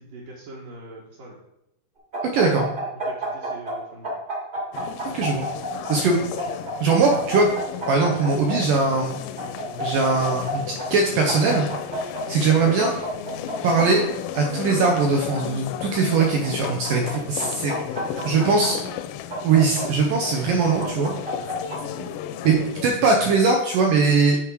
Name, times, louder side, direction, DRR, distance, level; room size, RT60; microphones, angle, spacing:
voice 1, 0.0-1.4 3.1-4.1 12.2-12.5 16.8-17.3 18.1-18.9 21.8-22.1, right 2 dB, 65° right, -5 dB, 2.4 m, -40 dB
sound 1, 2.1-3.7 4.0-5.9 6.4-8.5 9.4-10.5 10.8-10.9 11.3-12.2 12.8-13.8 14.4-15.4 16.2-17.1 17.4-18.7 19.3-20.3 20.8-21.8, right 1 dB, 35° right, 0.8 m, -31 dB
voice 2, 2.3-2.7 5.1-5.5 5.9-6.2 6.8-7.5 7.9-9.2 9.8-10.6 10.9-11.7 12.0-12.9 13.6-14.0 14.3-17.7 18.3-18.8 19.4-21.1 22.4-24.4, right 4 dB, 85° right, 1 dB, 1.8 m, -20 dB
sound 2, 4.7-22.9, left 10 dB, 85° left, 2.6 m, -34 dB
9.1 x 5.2 x 4.7 m, 0.88 s
omnidirectional pair, 5.0 m